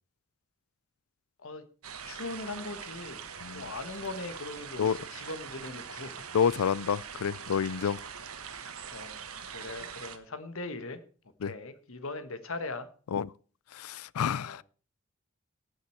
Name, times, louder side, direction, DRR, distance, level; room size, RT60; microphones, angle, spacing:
sound 1, 1.8-10.2, right 7 dB, 80° right, 1.4 m, -43 dB
voice 1, 2.0-3.2 3.5-6.3 8.9-9.2 9.5-11.0 11.4-12.9 14.4-14.6, left 2 dB, 65° left, 1.4 m, -40 dB
voice 2, 6.3-8.0 11.4-11.5 13.1-13.3 13.7-14.6, left 7 dB, 85° left, 0.4 m, -28 dB
18.0 x 6.7 x 4.5 m
head